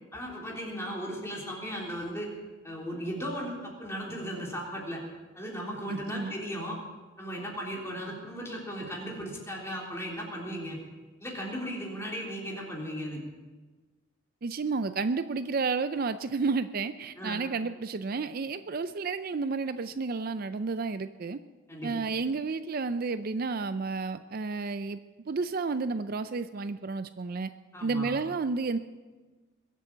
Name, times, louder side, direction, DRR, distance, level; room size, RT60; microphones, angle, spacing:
voice 1, 0.1-2.3 2.6-5.0 5.4-6.8 7.2-10.8 11.2-13.2 17.2-17.4 21.7-21.9 27.7-28.1, equal, 15° left, -2 dB, 3.5 m, -36 dB
voice 2, 5.9-6.3 14.4-21.4 21.8-25.0 25.3-27.5 27.8-28.8, right 4 dB, 45° right, 11 dB, 0.5 m, -31 dB
22.0 x 8.3 x 7.3 m, 1.3 s
head